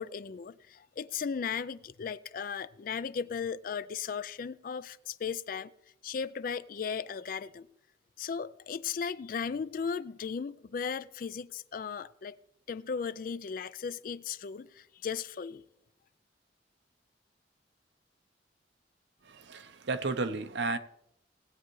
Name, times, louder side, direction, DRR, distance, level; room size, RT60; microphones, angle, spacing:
voice 1, 0.0-5.7 6.0-7.7 8.2-12.3 12.7-15.6, left 6 dB, 50° left, 0.3 m, -36 dB
voice 2, 19.2-20.8, right 3 dB, 75° right, 0.7 m, -33 dB
18.0 x 8.5 x 3.1 m
head